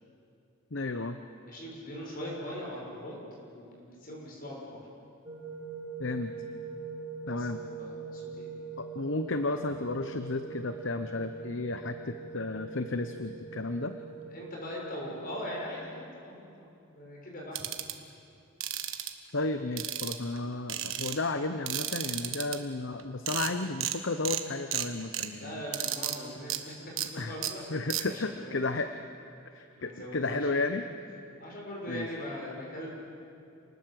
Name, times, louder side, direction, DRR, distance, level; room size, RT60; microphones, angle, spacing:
voice 1, 0.7-1.2 6.0-6.3 7.3-7.6 8.8-13.9 19.3-25.6 27.2-27.4 27.7-28.9 29.5-30.8 31.9-32.1, left 2 dB, 60° left, 8 dB, 0.9 m, -33 dB
voice 2, 1.4-3.2 3.5-4.8 7.3-8.5 12.0-12.2 14.3-15.9 16.2-17.8 25.4-27.6 28.0-28.7 29.5-30.6 31.4-32.9, left 1 dB, 45° left, -2 dB, 6.4 m, -41 dB
sound 1, 5.2-15.7, right 5 dB, 20° right, 6.5 m, -42 dB
sound 2, 17.5-17.9 18.6-19.1 19.8-20.4 20.7-21.2 21.7-22.6 23.0-23.1 23.3-23.5 23.8-24.0 24.2-24.4 24.7-25.3 25.7-26.2 26.5-26.6 27.0-27.1 27.4-27.5 27.9-28.0, right 12 dB, 65° right, 1.5 m, -32 dB
28.0 x 20.0 x 7.7 m, 2.6 s
head